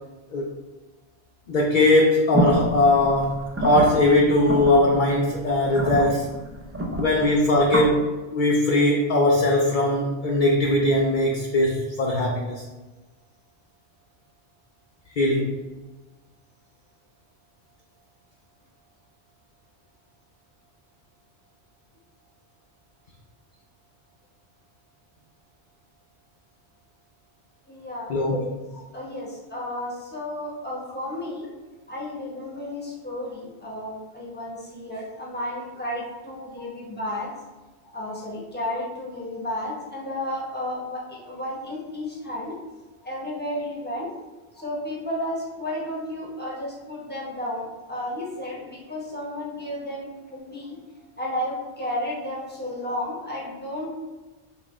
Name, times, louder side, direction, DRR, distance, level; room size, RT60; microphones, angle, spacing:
voice 1, 1.5-6.3 7.0-12.6 15.2-15.7 28.1-28.5 36.6-36.7, left 1 dB, 55° left, -1 dB, 0.6 m, -20 dB
sound 1, 2.3-7.9, right 1 dB, 25° right, 0.3 m, -28 dB
voice 2, 27.7-28.1 28.9-31.5 31.9-37.3 37.9-42.6 43.0-44.1 44.5-50.8 51.2-53.9, left 1 dB, 10° left, -4 dB, 1.0 m, -32 dB
5.4 x 2.5 x 3.1 m, 1.2 s
omnidirectional pair, 1.1 m